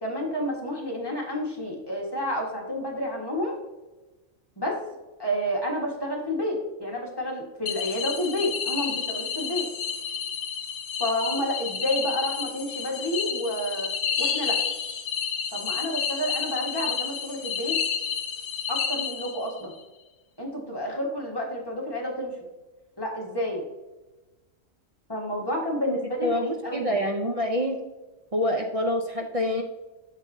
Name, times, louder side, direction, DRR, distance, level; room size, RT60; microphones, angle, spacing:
voice 1, 0.0-3.6 4.6-4.8 5.2-9.7 11.0-13.9 14.2-14.6 15.5-17.8 18.7-19.7 20.4-22.3 23.0-23.6 25.1-27.0, equal, 20° left, -2 dB, 1.6 m, -30 dB
sound 1, 7.7-19.6, left 7 dB, 65° left, 1.0 m, -30 dB
voice 2, 25.9-27.8 28.3-29.6, left 1 dB, 40° right, 3 dB, 0.5 m, -27 dB
7.3 x 7.2 x 2.7 m, 1.1 s
omnidirectional pair, 1.4 m